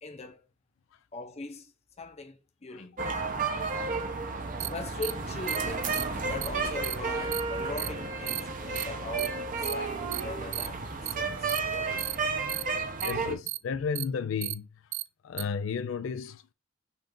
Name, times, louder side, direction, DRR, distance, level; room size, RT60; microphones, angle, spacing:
voice 1, 0.0-0.4 1.1-1.7 2.0-3.1 4.6-10.9 11.1-12.2, left 2 dB, 35° left, 0.7 m, -41 dB
sound 1, 3.0-13.4, right 4 dB, 45° right, 0.8 m, -32 dB
sound 2, 4.6-4.7 5.0-5.1 5.5-5.6 5.9-6.0 6.4-6.5 6.8-6.9 7.3-7.4 7.8-7.9 8.3-8.4 8.8-8.9 9.2-9.3 9.6-9.7 10.1-10.2 10.5-10.7 11.1-11.2 11.5-11.6 12.0-12.2 12.5-12.6 13.0-13.1 13.5-13.6 14.0-14.1 14.4-14.5 14.9-15.0 15.4-15.5, right 18 dB, 70° right, 0.3 m, -33 dB
voice 2, 13.0-14.7 15.2-16.5, left 6 dB, 80° left, 0.4 m, -33 dB
5.7 x 2.5 x 3.7 m
head